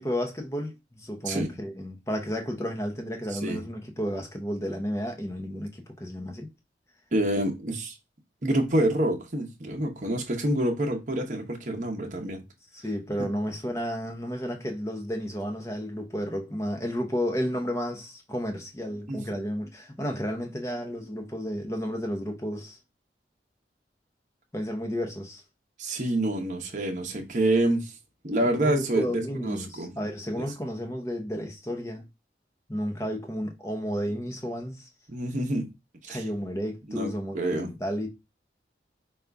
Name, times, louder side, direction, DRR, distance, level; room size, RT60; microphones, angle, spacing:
voice 1, 0.0-6.5 12.7-22.8 24.5-25.4 28.4-32.0 32.7-34.9 36.1-38.1, equal, 15° left, 0.7 m, -32 dB
voice 2, 3.3-3.6 7.1-8.0 8.4-12.4 19.1-19.2 25.8-27.9 28.2-29.9 30.4-30.5 35.1-35.7 36.0-36.2 36.9-37.7, right 1 dB, 45° right, 0.8 m, -27 dB
5.3 x 2.4 x 3.4 m
head